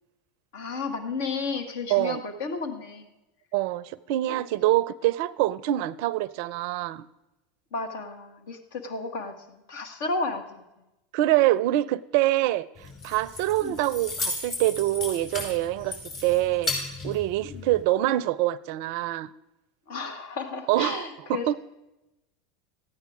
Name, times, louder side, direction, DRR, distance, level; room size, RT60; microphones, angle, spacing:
voice 1, 0.5-3.1 4.3-4.4 7.7-10.6 13.6-13.8 17.5-17.7 19.9-21.5, left 4 dB, 65° left, 1.4 m, -33 dB
voice 2, 1.9-2.2 3.5-7.1 11.1-16.7 17.0-19.3 20.7-21.5, right 15 dB, 60° right, 0.4 m, -25 dB
Keys jangling, 12.8-17.8, left 2 dB, 50° left, 4.8 m, -35 dB
14.0 x 9.3 x 4.9 m
hypercardioid pair, 85°, 0 cm